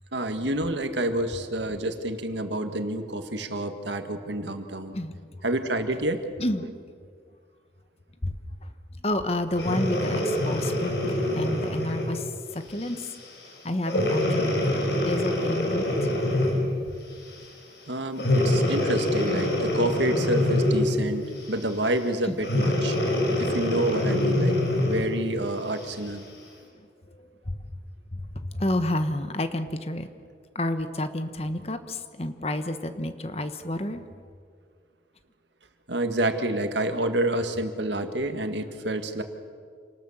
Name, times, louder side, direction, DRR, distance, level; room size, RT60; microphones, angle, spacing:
voice 1, 0.1-5.0 5.4-6.2 17.9-23.0 23.4-26.3 35.9-39.2, right 1 dB, 85° right, 7 dB, 1.9 m, -28 dB
voice 2, 9.0-13.1 13.6-14.6 15.0-15.9 22.3-22.4 27.2-27.6 28.1-30.1 30.5-34.0, left 1 dB, 35° left, 9 dB, 1.2 m, -30 dB
Breathing, 9.5-12.2 12.8-13.0 13.9-16.7 18.2-21.0 22.4-25.2 25.8-25.9, left 1 dB, 70° left, 5.4 m, -25 dB
27.5 x 19.5 x 7.3 m, 2.1 s
head